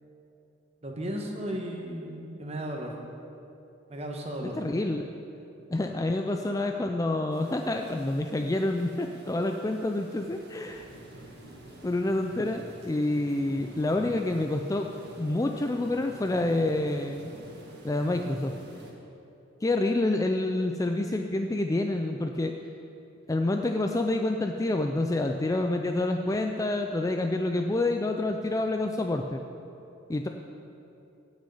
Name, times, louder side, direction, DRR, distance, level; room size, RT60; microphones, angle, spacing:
voice 1, 0.8-2.9 3.9-4.6, right 1 dB, 30° right, 1 dB, 1.3 m, -35 dB
voice 2, 4.4-5.0 5.7-10.9 11.8-14.9 15.2-17.3 17.8-18.5 19.6-22.5 23.3-29.4 30.1-30.3, left 2 dB, 15° left, 4 dB, 0.3 m, -28 dB
sound 1, 7.3-18.9, right 1 dB, 50° right, 1.7 m, -48 dB
16.5 x 6.4 x 5.6 m, 2.8 s
head